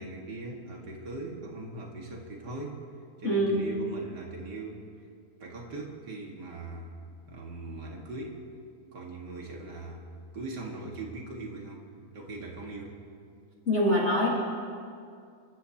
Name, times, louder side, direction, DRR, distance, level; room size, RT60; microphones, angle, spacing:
voice 1, 0.0-2.8 3.2-4.8 5.4-6.9 7.3-8.4 8.9-10.1 10.3-13.0, right 2 dB, 90° right, -1 dB, 2.6 m, -40 dB
voice 2, 3.2-3.6 13.7-14.3, equal, 45° left, -5 dB, 2.1 m, -24 dB
28.0 x 13.5 x 2.9 m, 2.3 s
omnidirectional pair, 1.8 m